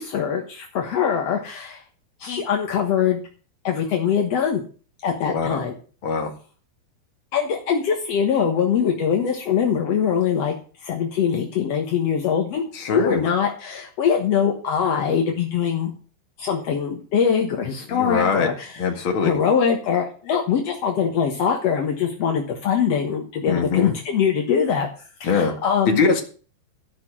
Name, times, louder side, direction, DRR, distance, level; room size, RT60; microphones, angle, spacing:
voice 1, 0.0-1.8 2.2-3.2 3.6-4.6 5.0-5.7 7.3-10.6 10.8-15.9 16.4-18.8 19.2-24.9 25.2-26.0, left 7 dB, 70° left, 2 dB, 1.6 m, -22 dB
voice 2, 5.2-5.6 6.0-6.3 12.7-13.2 17.9-18.5 18.8-19.3 23.5-23.9 25.2-25.5 26.0-26.2, left 5 dB, 40° left, 3 dB, 2.0 m, -22 dB
13.5 x 5.9 x 7.5 m, 0.39 s
omnidirectional pair, 4.8 m